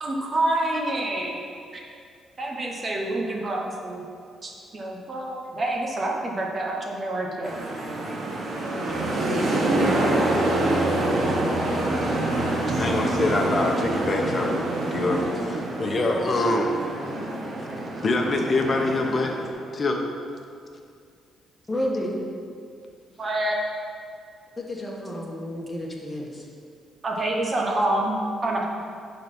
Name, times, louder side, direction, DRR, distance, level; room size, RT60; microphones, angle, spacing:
voice 1, 0.0-1.4 1.7-1.8 2.4-4.0 4.4-7.5 23.2-23.6 27.0-28.7, right 1 dB, 35° right, -1 dB, 1.2 m, -27 dB
sound 1, 7.4-19.5, right 1 dB, 55° right, 1.7 m, -26 dB
voice 2, 12.7-14.6 14.9-16.7 17.7-19.3 19.7-20.0, left 2 dB, 40° left, 2 dB, 1.1 m, -25 dB
voice 3, 21.7-22.2 24.6-26.5, equal, 15° left, -2 dB, 1.7 m, -30 dB
10.5 x 4.1 x 5.5 m, 2.3 s
cardioid pair, 90°, 0 cm